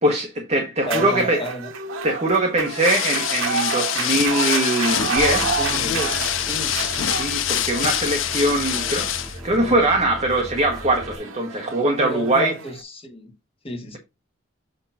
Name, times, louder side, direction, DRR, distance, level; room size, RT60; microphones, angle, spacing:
voice 1, 0.0-1.4 2.0-5.9 6.6-12.5, right 1 dB, 35° right, 1.3 m, -22 dB
sound 1, 0.8-12.8, right 5 dB, 90° right, 0.9 m, -30 dB
voice 2, 0.9-1.7 5.6-6.8 9.5-9.8 12.0-13.3 13.6-14.0, equal, 30° left, 1.5 m, -31 dB
sound 2, 2.7-9.4, left 11 dB, 80° left, 0.6 m, -25 dB
sound 3, 5.2-11.2, equal, ahead, 1.1 m, -37 dB
7.9 x 3.0 x 5.7 m
head